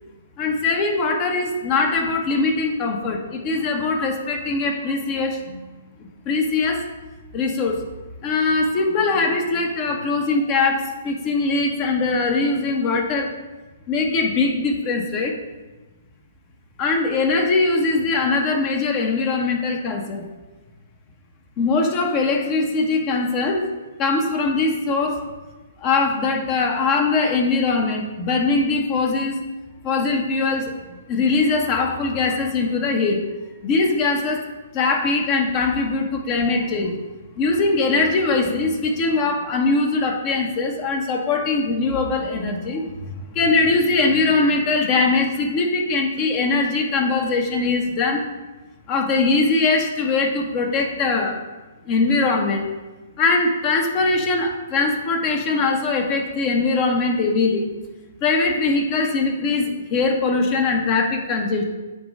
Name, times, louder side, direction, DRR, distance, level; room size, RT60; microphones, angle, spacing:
voice 1, 0.4-5.6 6.0-6.8 7.3-7.8 8.2-13.3 13.9-15.4 16.8-20.3 21.6-23.7 24.0-25.3 25.8-29.4 29.8-30.7 31.1-33.2 33.6-34.4 34.7-36.9 37.4-48.2 48.9-51.4 51.8-52.6 53.2-57.7 58.2-61.6, left 3 dB, 30° left, 3 dB, 1.1 m, -21 dB
8.5 x 3.1 x 5.4 m, 1.2 s
figure-of-eight pair, 120°, 0 cm